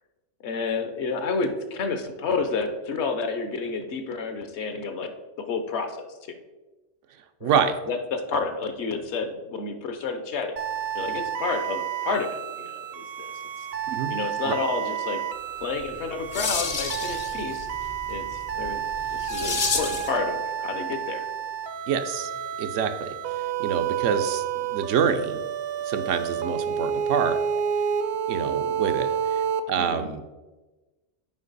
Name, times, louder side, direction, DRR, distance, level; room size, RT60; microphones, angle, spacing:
voice 1, 0.4-5.1 5.4-6.4 7.4-7.6 7.9-10.5 10.9-13.3 13.6-13.7 14.1-15.2 15.6-17.7 18.1-18.8 19.2-21.3 29.8-30.1, left 4 dB, 70° left, 7 dB, 1.1 m, -30 dB
voice 2, 7.4-7.8 13.9-14.1 14.4-14.5 21.9-22.3 22.6-25.4 25.8-27.4 28.3-30.2, right 7 dB, 85° right, 8 dB, 1.0 m, -27 dB
sound 1, 10.6-29.6, right 8 dB, 65° right, 0.7 m, -30 dB
sound 2, 15.8-20.2, left 5 dB, 40° left, 0.6 m, -31 dB
7.4 x 5.1 x 4.0 m, 1.2 s
omnidirectional pair, 1.2 m